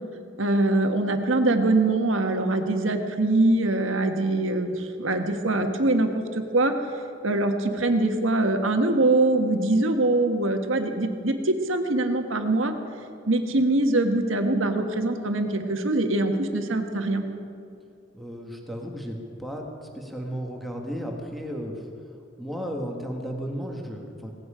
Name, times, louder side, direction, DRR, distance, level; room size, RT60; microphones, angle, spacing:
voice 1, 0.4-6.7 7.2-12.7 13.3-17.2, right 2 dB, 80° right, 5 dB, 1.5 m, -23 dB
voice 2, 18.1-21.9 22.4-24.3, equal, ahead, 1 dB, 1.7 m, -34 dB
18.0 x 16.0 x 5.0 m, 2.5 s
head